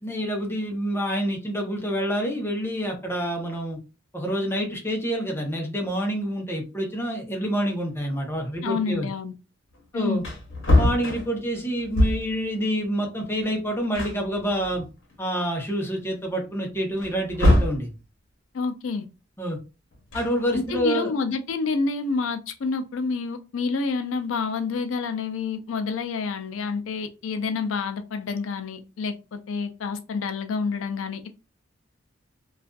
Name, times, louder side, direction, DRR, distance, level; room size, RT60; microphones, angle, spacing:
voice 1, 0.0-3.8 4.1-9.1 9.9-10.2 10.7-14.8 15.2-17.9 19.4-19.6 20.1-21.1, equal, 10° left, 0.6 m, -27 dB
voice 2, 8.6-9.3 9.9-10.2 18.5-19.1 20.5-31.3, left 4 dB, 80° left, 0.4 m, -28 dB
Wood, 9.8-9.9 10.1-12.4 13.5-13.6 13.9-15.1 15.6-15.7 17.0-17.9 19.9-20.9, left 1 dB, 65° left, 0.9 m, -23 dB
2.5 x 2.3 x 2.2 m
head